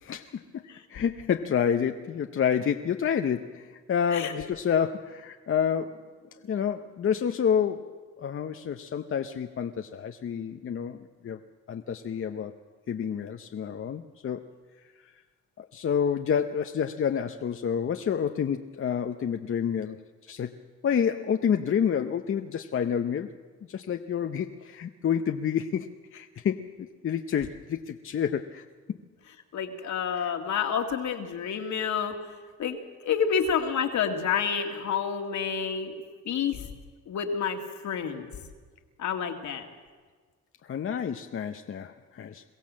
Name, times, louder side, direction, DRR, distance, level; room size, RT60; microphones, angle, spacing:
voice 1, 0.0-0.6 0.9-6.1 6.4-7.9 8.2-11.4 11.7-12.5 12.9-14.5 15.6-20.0 20.2-20.5 20.8-23.3 23.7-28.6 30.2-30.3 40.6-42.4, left 8 dB, 45° left, 7 dB, 0.8 m, -29 dB
voice 2, 29.5-32.2 32.6-32.8 33.0-35.9 36.3-36.6 37.1-38.3 39.0-39.7, left 7 dB, 70° left, 4 dB, 2.1 m, -29 dB
22.5 x 15.5 x 7.5 m, 1.5 s
cardioid pair, 90°, 30 cm